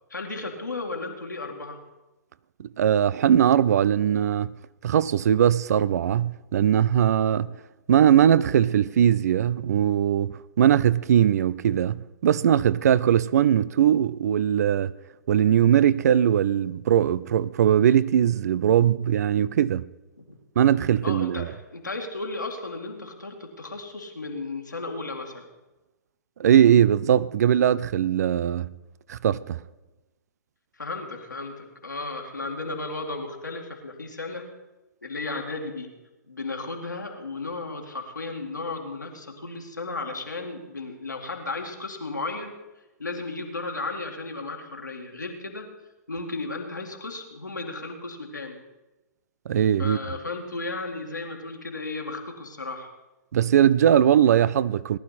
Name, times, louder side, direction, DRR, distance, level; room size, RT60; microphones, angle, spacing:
voice 1, 0.1-1.8 20.2-20.3 21.0-25.5 30.8-34.6 35.0-36.0 36.3-42.6 43.0-45.7 46.1-48.6 49.8-52.9, left 3 dB, 90° left, 2.2 m, -34 dB
voice 2, 2.6-4.5 4.8-7.5 7.9-14.9 15.3-19.8 20.6-21.5 26.4-28.7 29.1-29.6 49.5-50.0 53.3-55.0, right 9 dB, 60° right, 0.5 m, -20 dB
18.5 x 11.5 x 4.2 m
figure-of-eight pair, 120°, 10 cm